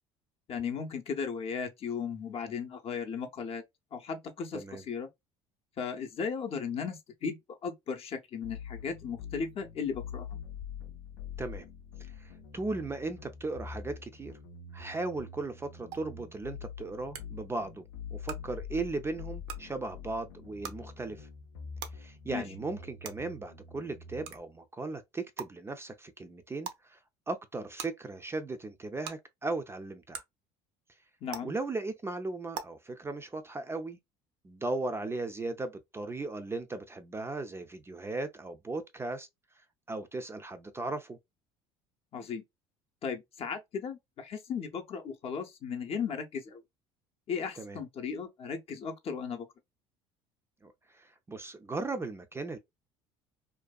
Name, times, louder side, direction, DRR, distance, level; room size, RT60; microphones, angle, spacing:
voice 1, 0.5-3.6 3.9-5.1 5.8-10.3 22.3-22.4 31.2-31.5 42.1-42.4 43.0-46.6 47.3-49.5, left 6 dB, 45° left, 0.6 m, -36 dB
sound 1, 8.4-24.4, left 6 dB, 85° left, 0.5 m, -45 dB
voice 2, 12.2-14.3 14.7-17.8 18.1-21.3 22.0-27.0 27.3-30.2 31.4-34.0 34.4-39.3 39.9-41.2 47.6-47.8 50.6-50.7 51.0-52.6, right 3 dB, 20° right, 0.3 m, -37 dB
sound 2, 15.9-16.0 17.1-17.2 18.2-18.3 19.4-19.6 20.6-20.7 21.8-21.9 23.0-23.1 24.2-24.4 25.4-25.5 26.6-26.8 27.8-27.9 29.0-29.1 30.1-30.2 31.3-31.4 32.5-32.6, right 8 dB, 75° right, 0.5 m, -38 dB
2.5 x 2.2 x 2.2 m
hypercardioid pair, 75°, 14 cm